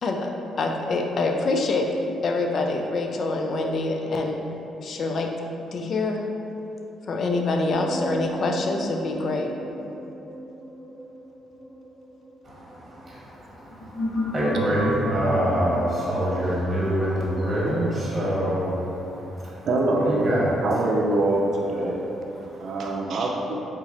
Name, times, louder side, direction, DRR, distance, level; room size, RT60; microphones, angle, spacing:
voice 1, 0.0-1.9 2.2-4.4 4.8-5.3 5.7-6.2 7.1-9.5, left 3 dB, 55° left, 3 dB, 0.4 m, -25 dB
sound 1, 7.7-13.0 13.6-18.5, equal, 75° left, 0.9 m, -34 dB
voice 2, 12.4-20.5 22.3-22.9, equal, 35° right, -6 dB, 1.4 m, -26 dB
voice 3, 19.7-20.3 20.6-22.0 22.6-23.6, right 2 dB, 65° right, 0 dB, 0.5 m, -24 dB
4.1 x 3.7 x 2.6 m, 2.9 s
cardioid pair, 90°, 0 cm